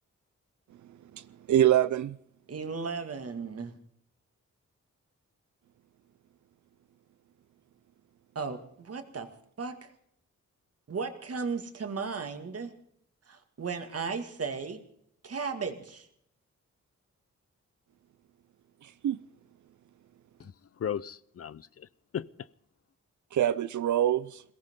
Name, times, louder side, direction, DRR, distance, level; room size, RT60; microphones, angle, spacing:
voice 1, 1.1-2.2 18.8-19.2 23.3-24.4, right 11 dB, 80° right, 0.6 m, -25 dB
voice 2, 2.5-3.8 8.4-9.3 9.6-9.9 10.9-12.7 13.3-14.8 15.2-16.1, right 5 dB, 55° right, 2.0 m, -35 dB
voice 3, 20.4-22.5, left 8 dB, 55° left, 0.5 m, -37 dB
22.0 x 18.0 x 3.7 m
wide cardioid pair, 130°, 29 cm